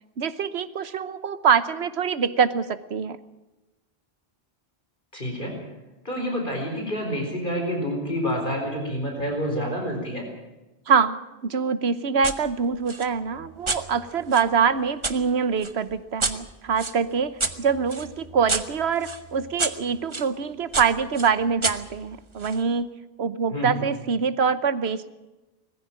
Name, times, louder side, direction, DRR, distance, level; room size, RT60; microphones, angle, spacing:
voice 1, 0.2-3.2 10.9-25.1, right 6 dB, 85° right, 14 dB, 1.3 m, -24 dB
voice 2, 5.1-5.6 6.0-10.3 23.5-23.8, equal, 50° left, 2 dB, 4.7 m, -28 dB
sound 1, 12.2-12.4 12.9-15.2 15.6-20.3 20.7-22.6, right 3 dB, 30° right, 1.2 m, -31 dB
20.5 x 15.0 x 9.0 m, 1.1 s
omnidirectional pair, 1.0 m